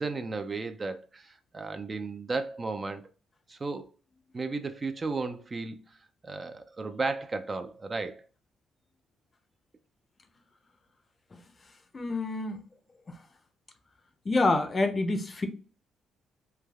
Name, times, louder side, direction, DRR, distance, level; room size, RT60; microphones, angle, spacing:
voice 1, 0.0-3.0 3.5-3.9 4.3-6.0 6.2-8.2, right 3 dB, 30° right, 0.3 m, -34 dB
voice 2, 11.9-12.6 13.1-13.2 14.3-15.5, left 2 dB, 30° left, 0.5 m, -27 dB
3.2 x 2.2 x 2.2 m
cardioid pair, 90°, 0 cm